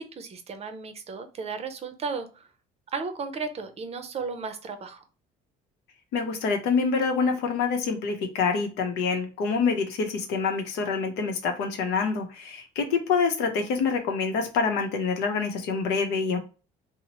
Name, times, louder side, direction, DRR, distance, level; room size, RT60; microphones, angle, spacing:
voice 1, 0.0-2.5 2.9-5.0, right 5 dB, 40° right, 8 dB, 0.5 m, -34 dB
voice 2, 6.1-16.4, left 5 dB, 85° left, 5 dB, 0.7 m, -26 dB
2.9 x 2.0 x 2.9 m, 0.34 s
cardioid pair, 110°, 17 cm